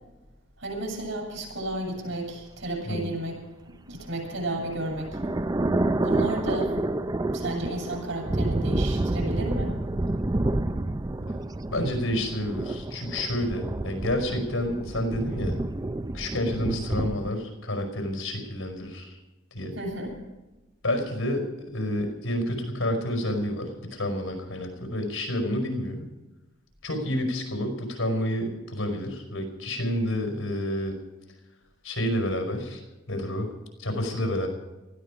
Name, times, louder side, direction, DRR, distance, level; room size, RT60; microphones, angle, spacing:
voice 1, 0.6-3.4 3.9-5.1 6.0-6.7 7.3-9.7 19.7-20.1, right 1 dB, 75° right, -1 dB, 8.0 m, -32 dB
voice 2, 2.8-3.1 11.3-11.4 11.7-15.6 16.1-19.2 19.5-19.7 20.8-21.5 21.7-26.1 26.8-31.0 31.8-32.8 33.1-33.5 33.8-34.5, left 1 dB, 90° left, 4 dB, 5.1 m, -29 dB
sound 1, 4.2-17.3, right 2 dB, 20° right, 0.5 m, -29 dB
19.5 x 14.5 x 5.0 m, 1.1 s
head